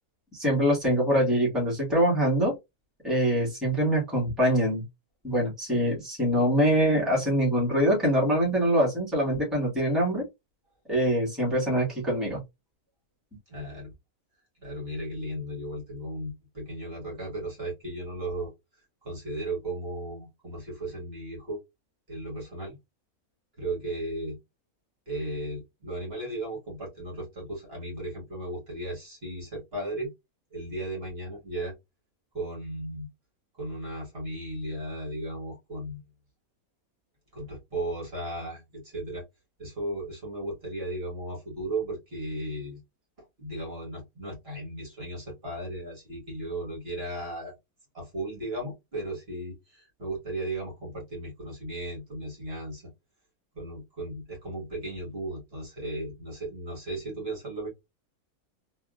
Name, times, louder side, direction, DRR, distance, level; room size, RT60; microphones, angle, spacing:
voice 1, 0.3-2.5 3.0-4.8 5.2-10.3 10.9-12.4, equal, ahead, 1.4 m, -24 dB
voice 2, 13.5-13.9 14.6-21.6 22.1-22.8 23.6-24.4 25.1-30.1 30.5-31.7 32.3-33.1 33.6-36.0 37.3-39.2 39.6-42.8 43.4-47.5 47.9-52.9 53.5-57.7, right 1 dB, 40° right, 1.7 m, -36 dB
3.5 x 2.5 x 2.4 m
omnidirectional pair, 1.6 m